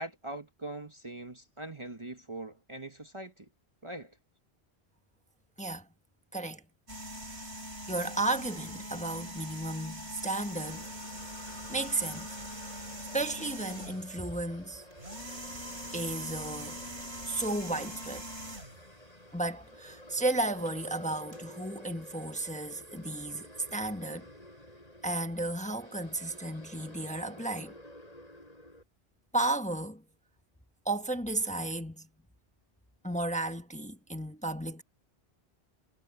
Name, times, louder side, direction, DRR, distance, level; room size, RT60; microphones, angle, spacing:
voice 1, 0.0-3.5 3.8-4.1, right 2 dB, 30° right, 1.2 m, -42 dB
voice 2, 6.3-6.6 7.9-10.9 11.7-12.4 13.1-14.8 15.9-16.8 17.2-18.3 19.3-24.3 25.0-27.7 29.3-30.0 30.8-32.1 33.0-34.8, right 2 dB, 5° left, 1.2 m, -33 dB
sound 1, 6.9-14.2 14.9-18.9 20.7-20.8 21.3-21.4, equal, 85° right, 5.6 m, -42 dB
sound 2, 10.6-28.8, left 1 dB, 35° left, 5.1 m, -51 dB
omnidirectional pair, 1.1 m